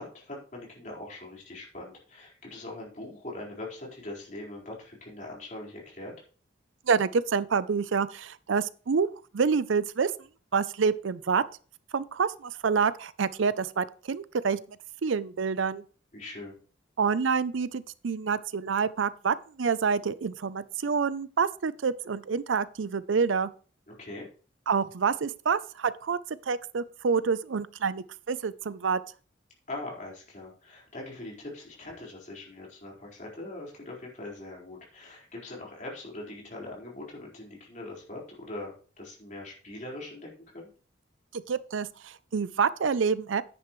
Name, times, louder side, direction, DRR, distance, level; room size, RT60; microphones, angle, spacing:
voice 1, 0.0-6.2 16.1-16.6 23.9-24.3 29.7-40.7, left 2 dB, 40° left, 4.4 m, -42 dB
voice 2, 6.9-9.1 9.3-10.1 10.5-11.4 11.9-14.6 15.0-15.8 17.0-23.5 24.7-26.2 26.5-29.0 41.3-43.4, right 5 dB, 80° right, 0.5 m, -27 dB
10.5 x 9.4 x 3.1 m
head